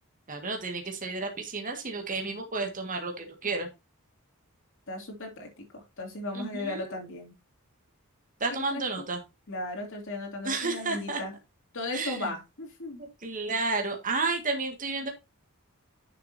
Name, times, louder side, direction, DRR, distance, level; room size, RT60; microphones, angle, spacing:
voice 1, 0.3-3.7 6.3-6.9 8.4-9.2 10.4-11.2 11.9-12.3 13.0-15.1, right 3 dB, 40° right, 3 dB, 1.8 m, -31 dB
voice 2, 4.9-7.3 8.5-9.1 9.5-11.3 11.7-13.0, left 2 dB, 65° left, 1 dB, 2.6 m, -36 dB
10.5 x 6.7 x 2.7 m, 0.25 s
head